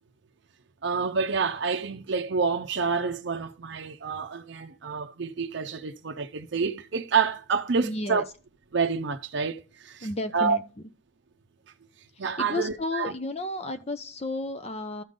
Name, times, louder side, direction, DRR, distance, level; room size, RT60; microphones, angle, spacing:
voice 1, 0.8-8.3 8.7-10.1 10.3-10.6 12.2-13.1, right 5 dB, 65° right, 0.6 m, -28 dB
voice 2, 7.8-8.2 10.0-10.6 12.4-15.0, left 2 dB, 35° left, 0.9 m, -32 dB
13.0 x 5.2 x 3.8 m
head